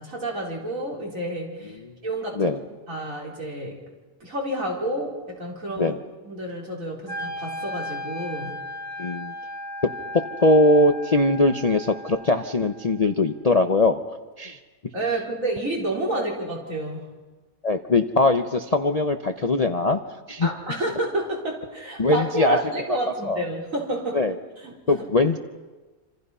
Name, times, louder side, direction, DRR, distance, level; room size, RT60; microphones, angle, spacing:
voice 1, 0.0-2.6 2.9-3.8 4.2-5.9 6.2-8.6 14.9-17.2 20.4-24.2 24.6-24.9, right 1 dB, 60° right, -2 dB, 4.6 m, -30 dB
Wind instrument woodwind instrument, 7.1-13.1, equal, 15° right, 2.2 m, -36 dB
voice 2, 9.0-9.3 9.8-14.6 17.6-20.0 20.3-20.5 22.0-22.6 23.3-23.4 24.1-24.4 24.9-25.4, left 2 dB, 35° left, 6 dB, 0.7 m, -21 dB
27.5 x 26.5 x 5.6 m, 1.3 s
omnidirectional pair, 1.6 m